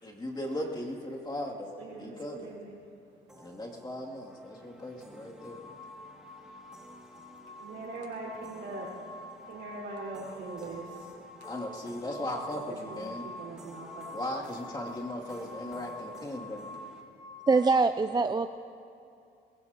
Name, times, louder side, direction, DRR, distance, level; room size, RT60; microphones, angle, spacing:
voice 1, 0.0-1.7 2.0-2.5 3.3-5.7 11.5-13.3 14.1-16.7, left 1 dB, 20° left, -3 dB, 2.8 m, -37 dB
voice 2, 1.5-2.8 7.6-9.1 9.5-11.0 12.7-13.1 13.4-14.1, right 3 dB, 75° right, -5 dB, 4.9 m, -42 dB
sound 1, 3.3-17.0, right 1 dB, 5° right, 2.4 m, -53 dB
sound 2, 5.4-17.6, left 2 dB, 70° left, 4.1 m, -47 dB
voice 3, 17.5-18.5, right 4 dB, 20° right, 9 dB, 0.4 m, -23 dB
22.0 x 21.0 x 3.0 m, 2.6 s
cardioid pair, 90°, 20 cm